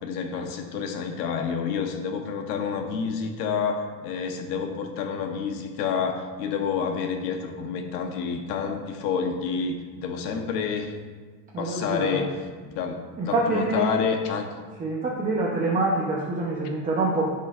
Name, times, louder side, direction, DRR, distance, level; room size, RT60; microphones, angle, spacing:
voice 1, 0.0-10.9 11.6-14.5, left 6 dB, 80° left, 4 dB, 1.2 m, -29 dB
voice 2, 11.5-12.2 13.2-13.9 14.8-17.3, right 2 dB, 15° right, -4 dB, 0.8 m, -25 dB
15.0 x 5.6 x 2.5 m, 1.5 s
cardioid pair, 160°, 46 cm